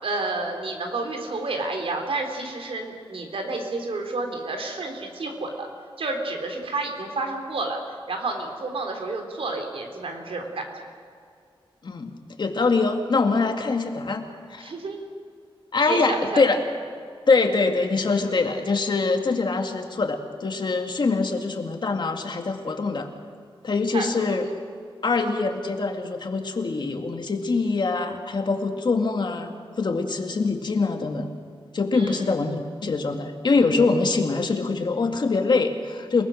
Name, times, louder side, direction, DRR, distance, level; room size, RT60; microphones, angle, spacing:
voice 1, 0.0-5.7 6.0-7.8 8.1-10.7 14.6-15.1 15.9-16.4 23.9-24.4 31.9-32.3, right 3 dB, 75° right, 3 dB, 3.8 m, -30 dB
voice 2, 12.4-14.2 14.5-14.7 15.7-16.6 17.3-23.1 23.6-24.5 25.0-29.5 29.8-31.3 31.7-36.2, left 3 dB, 50° left, 4 dB, 2.2 m, -24 dB
29.0 x 19.5 x 6.6 m, 2.3 s
wide cardioid pair, 135°, 10 cm